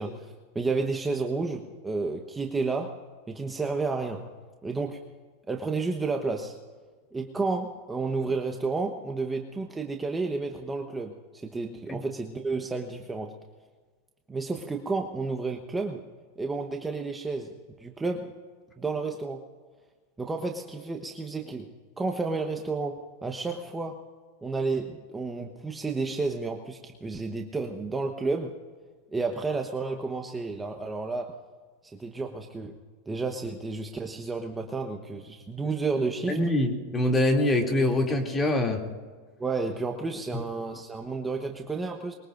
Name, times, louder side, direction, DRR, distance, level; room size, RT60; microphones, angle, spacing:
voice 1, 0.0-3.0 3.3-4.2 4.6-5.0 5.5-6.6 7.1-13.4 14.3-16.0 16.4-18.3 18.8-19.4 20.2-21.7 22.0-24.0 24.4-28.6 29.1-31.4 31.8-32.7 33.1-36.4 39.4-42.1, right 3 dB, 15° right, 3 dB, 1.1 m, -31 dB
voice 2, 36.3-38.8 40.3-40.4, left 1 dB, 20° left, 1 dB, 2.7 m, -24 dB
24.0 x 22.0 x 2.6 m, 1.5 s
hypercardioid pair, 115°, 0 cm